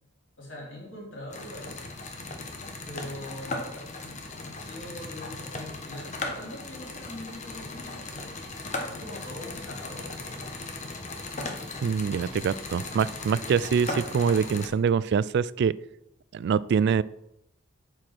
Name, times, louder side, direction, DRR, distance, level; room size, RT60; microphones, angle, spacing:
voice 1, 0.4-1.8 2.7-10.4, left 1 dB, 70° left, -3 dB, 3.7 m, -43 dB
sound 1, 1.3-14.7, left 2 dB, 40° left, 1.2 m, -37 dB
voice 2, 11.8-15.7 16.3-17.0, right 6 dB, 60° right, 20 dB, 0.3 m, -24 dB
8.4 x 4.8 x 6.0 m, 0.84 s
head